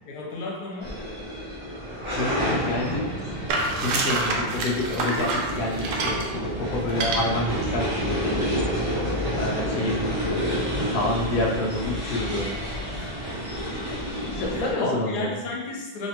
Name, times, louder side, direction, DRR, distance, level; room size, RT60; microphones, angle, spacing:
voice 1, 0.0-1.0 12.9-13.1 13.7-14.0 14.5-16.1, left 3 dB, 65° left, -2 dB, 1.1 m, -33 dB
sound 1, 0.8-14.7, equal, 40° right, 0.4 m, -29 dB
voice 2, 2.1-3.3 3.8-8.6 9.4-12.5 14.3-15.3, left 2 dB, 85° left, -2 dB, 0.7 m, -28 dB
sound 2, 3.5-6.3 6.9-7.2, right 3 dB, 75° right, 1.2 m, -27 dB
3.3 x 2.8 x 2.8 m, 1.1 s
omnidirectional pair, 2.2 m